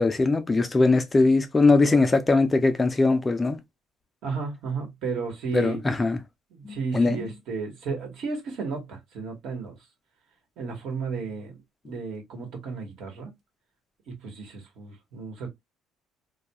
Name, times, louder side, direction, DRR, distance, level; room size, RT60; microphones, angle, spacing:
voice 1, 0.0-3.6 5.5-6.2 6.6-7.3, left 3 dB, 20° left, 0.4 m, -21 dB
voice 2, 4.2-5.8 6.5-9.8 10.6-13.3 14.1-15.5, right 5 dB, 70° right, 1.1 m, -33 dB
2.2 x 2.2 x 2.8 m
cardioid pair, 110°, 0 cm